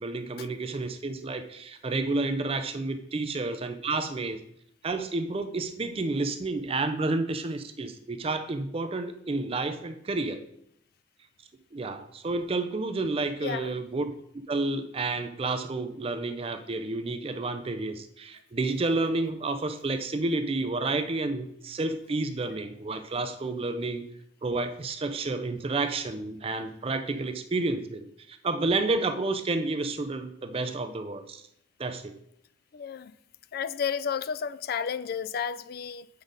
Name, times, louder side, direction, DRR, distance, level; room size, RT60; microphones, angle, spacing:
voice 1, 0.0-4.4 4.8-10.4 11.7-14.1 14.5-24.0 24.4-31.4 31.8-32.1, right 3 dB, 30° right, 0.4 m, -30 dB
voice 2, 13.4-13.8 32.7-33.1 33.5-36.1, left 7 dB, 50° left, 0.3 m, -32 dB
8.0 x 3.9 x 5.2 m
head